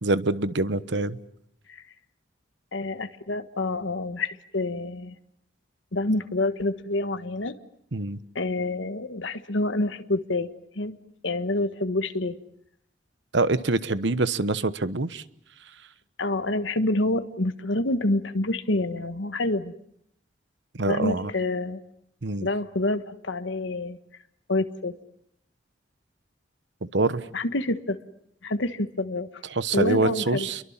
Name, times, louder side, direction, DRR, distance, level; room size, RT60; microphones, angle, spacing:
voice 1, 0.0-1.2 7.9-8.2 13.3-15.2 20.7-21.3 22.2-22.5 26.9-27.2 29.5-30.6, right 2 dB, 70° right, 15 dB, 1.1 m, -25 dB
voice 2, 2.7-5.2 5.9-7.6 8.3-10.5 10.7-11.0 11.2-12.4 16.2-19.7 20.9-21.8 22.4-24.0 24.5-25.0 27.3-28.0 28.4-29.4 29.7-30.5, left 2 dB, 80° left, 9 dB, 1.4 m, -27 dB
29.5 x 23.5 x 7.3 m, 0.71 s
head